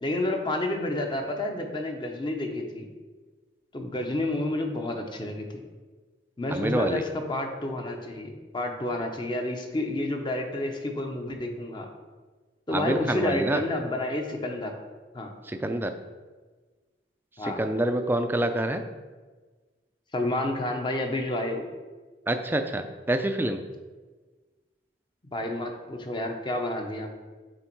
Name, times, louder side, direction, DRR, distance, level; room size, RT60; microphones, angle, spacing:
voice 1, 0.0-2.9 3.7-5.6 6.4-11.9 12.7-14.8 15.1-15.3 17.4-17.6 20.1-21.6 25.3-27.1, left 1 dB, 25° left, 3 dB, 0.7 m, -30 dB
voice 2, 6.5-7.0 12.7-13.6 15.4-15.9 17.4-18.8 22.3-23.6, right 1 dB, 10° right, 7 dB, 0.4 m, -27 dB
8.1 x 3.5 x 4.5 m, 1.3 s
head